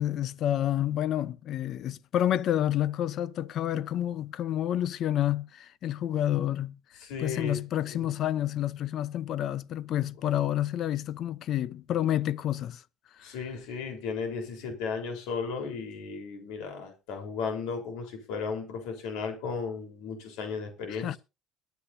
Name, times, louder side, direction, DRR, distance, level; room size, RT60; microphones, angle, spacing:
voice 1, 0.0-6.8 7.2-12.8 13.2-13.3 20.9-21.2, left 11 dB, 55° left, 0.7 m, -29 dB
voice 2, 7.0-7.6 7.9-8.1 13.2-21.2, left 5 dB, 80° left, 4.0 m, -35 dB
22.0 x 8.4 x 2.7 m
cardioid pair, 110°, 0 cm